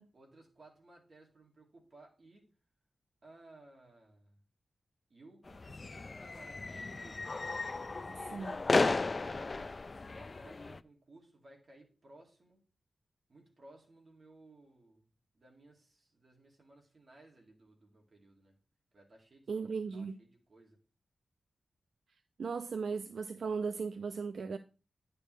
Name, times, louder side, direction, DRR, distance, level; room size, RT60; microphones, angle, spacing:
voice 1, 0.1-2.5 3.2-4.4 5.1-7.2 7.6-9.8 10.1-12.6 13.3-15.1 15.3-18.6 18.9-20.8, right 2 dB, 45° right, 2.3 m, -59 dB
sound 1, 5.5-10.8, left 3 dB, 35° left, 0.3 m, -34 dB
voice 2, 19.5-20.2 22.4-24.6, right 5 dB, 75° right, 0.4 m, -37 dB
9.8 x 6.8 x 3.2 m
wide cardioid pair, 120°, 0 cm